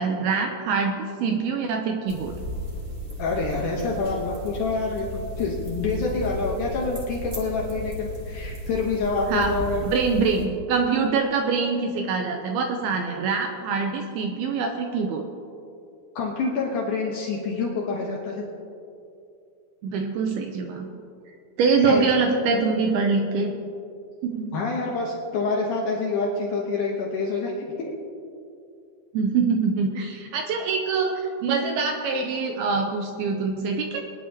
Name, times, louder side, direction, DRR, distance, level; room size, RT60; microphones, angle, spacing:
voice 1, 0.0-2.3 9.3-9.6 9.8-15.3 19.8-20.9 21.6-23.5 24.2-24.6 29.1-34.0, right 4 dB, 85° right, 3 dB, 2.2 m, -24 dB
sound 1, 2.1-10.5, equal, 25° right, 1.8 m, -35 dB
voice 2, 3.2-9.8 16.2-18.4 21.8-22.1 24.5-27.7, left 3 dB, 85° left, -2 dB, 1.7 m, -27 dB
22.0 x 11.0 x 2.9 m, 2.5 s
omnidirectional pair, 5.3 m